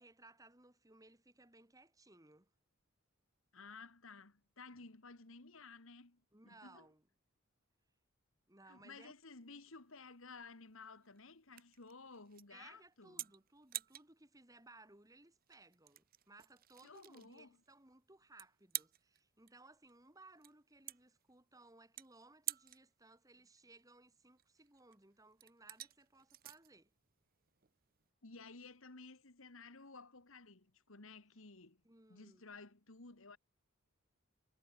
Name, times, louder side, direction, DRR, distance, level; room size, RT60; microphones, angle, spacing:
voice 1, 0.0-2.5 6.3-7.0 8.5-9.1 12.5-26.9 31.8-32.5, right 2 dB, 15° right, 3.3 m, -62 dB
voice 2, 3.5-6.9 8.7-13.3 16.8-17.5 28.2-31.8 32.1-33.4, left 4 dB, 70° left, 1.9 m, -55 dB
sound 1, 9.3-28.1, right 15 dB, 45° right, 0.8 m, -51 dB
head